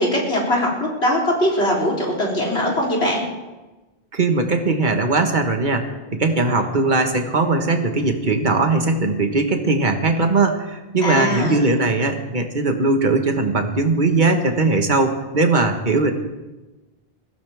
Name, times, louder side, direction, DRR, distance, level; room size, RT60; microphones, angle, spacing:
voice 1, 0.0-3.2 11.0-11.6, left 1 dB, 90° left, -3 dB, 4.0 m, -21 dB
voice 2, 4.1-16.1, right 3 dB, 50° right, 5 dB, 1.6 m, -19 dB
21.0 x 16.0 x 3.6 m, 1.1 s
omnidirectional pair, 1.1 m